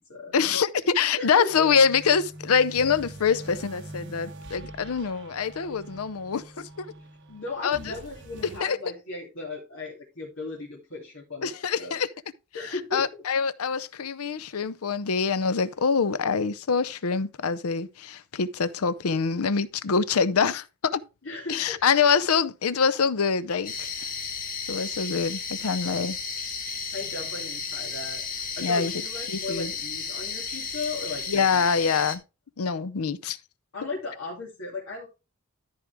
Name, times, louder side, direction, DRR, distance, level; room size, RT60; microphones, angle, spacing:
voice 1, 0.3-6.9 7.6-7.9 8.6-8.8 11.4-12.1 12.9-21.0 21.5-23.9 24.7-26.2 28.6-28.9 29.3-29.7 31.3-32.2 32.6-33.4, left 6 dB, 80° left, 0.6 m, -25 dB
voice 2, 1.2-1.7 7.0-11.5 11.8-12.0 12.5-13.2 21.2-21.9 24.0-24.1 26.9-28.3 28.6-31.8 33.7-35.1, left 3 dB, 65° left, 2.7 m, -37 dB
sound 1, 1.5-8.6, right 1 dB, 55° right, 1.1 m, -44 dB
sound 2, 23.6-32.2, left 5 dB, 40° left, 1.5 m, -34 dB
13.5 x 4.8 x 3.5 m
head